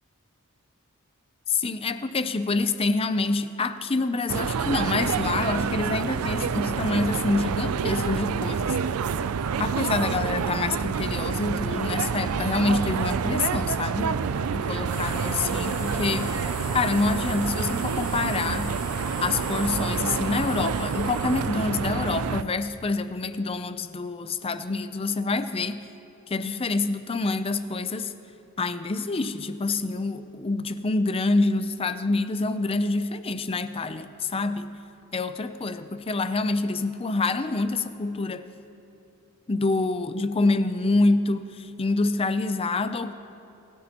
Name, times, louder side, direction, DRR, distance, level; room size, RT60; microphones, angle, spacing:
voice 1, 1.5-8.8 9.6-14.2 14.5-16.4 16.7-18.8 19.2-25.9 26.3-28.1 28.6-34.8 35.1-38.5 39.5-43.1, left 3 dB, 25° left, 11 dB, 0.5 m, -26 dB
sound 1, 4.3-22.4, right 6 dB, 85° right, 0.4 m, -28 dB
sound 2, 14.8-21.5, equal, 5° right, 3.7 m, -36 dB
26.5 x 14.5 x 3.0 m, 2.9 s
head